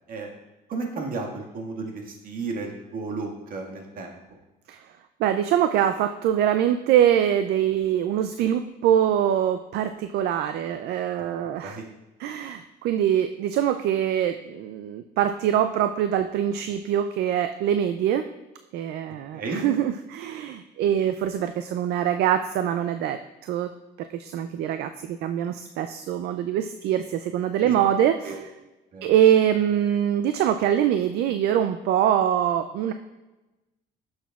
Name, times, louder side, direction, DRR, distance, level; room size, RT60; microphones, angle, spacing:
voice 1, 0.7-4.2 11.6-11.8 19.3-19.6 27.6-27.8 28.2-28.4 28.9-29.1, right 3 dB, 55° right, 0 dB, 1.7 m, -33 dB
voice 2, 5.2-11.8 12.2-18.3 18.7-23.7 24.0-28.4 29.0-32.9, right 10 dB, 75° right, 9 dB, 0.4 m, -24 dB
12.0 x 6.4 x 2.4 m, 1.1 s
cardioid pair, 110°, 17 cm